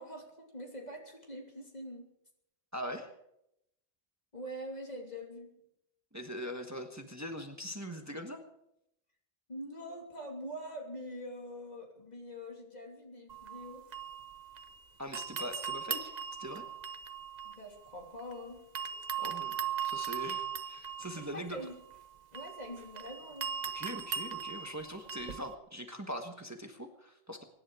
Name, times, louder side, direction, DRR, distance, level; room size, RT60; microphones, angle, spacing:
voice 1, 0.0-2.1 4.3-5.5 9.5-13.8 17.4-18.6 21.1-21.7 22.3-23.5, equal, 40° left, 0 dB, 3.2 m, -44 dB
voice 2, 2.7-3.1 6.1-8.4 15.0-16.1 16.4-16.6 19.2-19.5 19.8-21.6 23.7-27.4, equal, 15° right, 4 dB, 1.4 m, -42 dB
sound 1, 13.3-14.8 15.1-18.3 18.8-25.5, right 7 dB, 45° right, 0.8 m, -39 dB
24.0 x 11.0 x 4.9 m, 0.80 s
omnidirectional pair, 1.1 m